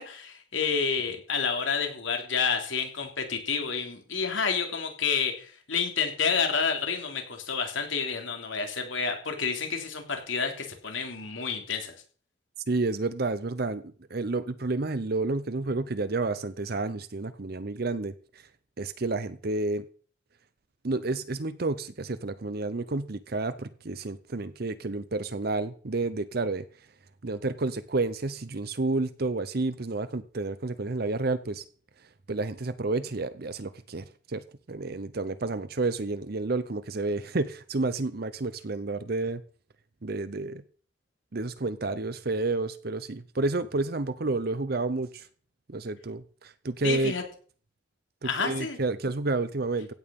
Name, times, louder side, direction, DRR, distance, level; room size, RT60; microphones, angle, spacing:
voice 1, 0.0-11.9 46.8-47.2 48.2-48.8, left 5 dB, 80° left, 4 dB, 3.3 m, -29 dB
voice 2, 12.7-13.8 14.1-18.4 18.8-19.8 20.8-26.6 27.2-31.6 32.3-39.4 40.0-40.6 41.3-45.3 45.7-47.1 48.2-49.9, right 3 dB, 50° right, 13 dB, 0.8 m, -30 dB
16.0 x 8.9 x 5.3 m, 0.44 s
head